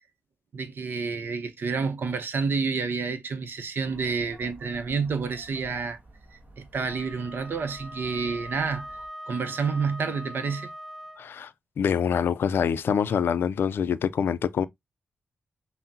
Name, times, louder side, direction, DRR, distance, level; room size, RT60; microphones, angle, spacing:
voice 1, 0.5-6.0 6.3-8.9 9.3-10.7, right 5 dB, 65° right, 0.7 m, -29 dB
sound 1, 3.8-9.1, right 1 dB, 45° right, 1.5 m, -51 dB
Wind instrument woodwind instrument, 6.7-11.3, equal, 5° right, 0.4 m, -42 dB
voice 2, 11.2-11.5 11.8-14.7, left 7 dB, 80° left, 0.4 m, -25 dB
5.6 x 2.1 x 2.7 m
wide cardioid pair, 95°, 4 cm